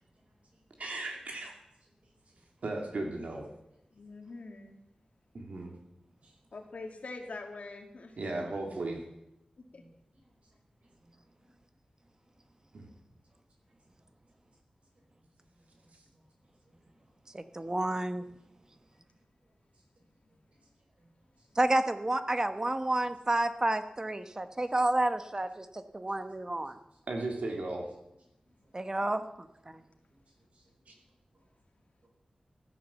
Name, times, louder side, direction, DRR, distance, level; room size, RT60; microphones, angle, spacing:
voice 1, 0.8-1.5 2.6-3.5 5.3-5.7 8.2-9.0 12.7-12.9 27.1-27.9 30.9-31.0, right 2 dB, 80° right, 1 dB, 3.1 m, -36 dB
voice 2, 3.9-4.8 6.5-8.2 9.7-9.8 22.8-23.1, left 3 dB, 70° left, 3 dB, 2.2 m, -44 dB
voice 3, 9.7-10.3 10.8-11.1 11.4-11.5 15.5-16.2 16.6-16.7 20.3-20.4 21.0-21.1 21.4-21.5 28.4-28.5 30.1-30.2 30.5-30.7 31.3-31.4 32.0-32.1, right 1 dB, 60° right, 0 dB, 4.9 m, -66 dB
voice 4, 17.3-18.2 21.6-26.8 28.7-29.2, right 1 dB, 25° right, 10 dB, 1.1 m, -30 dB
15.5 x 9.6 x 7.4 m, 0.86 s
wide cardioid pair, 90°, 2 cm